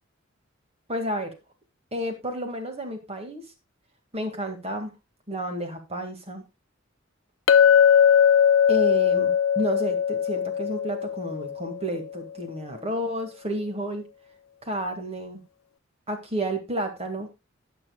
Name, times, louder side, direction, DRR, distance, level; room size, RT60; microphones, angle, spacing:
voice 1, 0.9-1.3 1.9-3.4 4.1-4.9 5.3-6.4 8.7-9.3 9.6-14.0 14.6-15.4 16.1-17.3, right 1 dB, 30° right, 5 dB, 1.9 m, -31 dB
Chink clink, 7.5-11.9, left 8 dB, 85° left, 0.5 m, -20 dB
20.0 x 6.8 x 2.3 m, 0.24 s
head